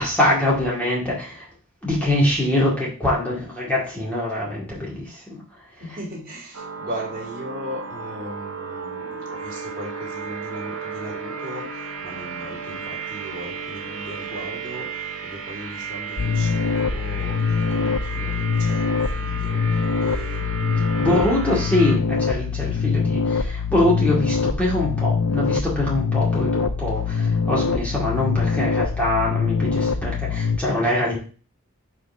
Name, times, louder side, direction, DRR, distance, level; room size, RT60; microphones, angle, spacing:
voice 1, 0.0-1.5 1.8-5.4 21.0-31.2, left 1 dB, 5° left, -5 dB, 2.1 m, -23 dB
voice 2, 5.8-21.3, equal, 40° right, -2 dB, 2.6 m, -37 dB
sound 1, 6.5-22.0, right 5 dB, 75° right, 1.4 m, -34 dB
sound 2, 16.2-30.6, left 5 dB, 90° left, 0.6 m, -23 dB
5.0 x 4.5 x 5.6 m, 0.37 s
head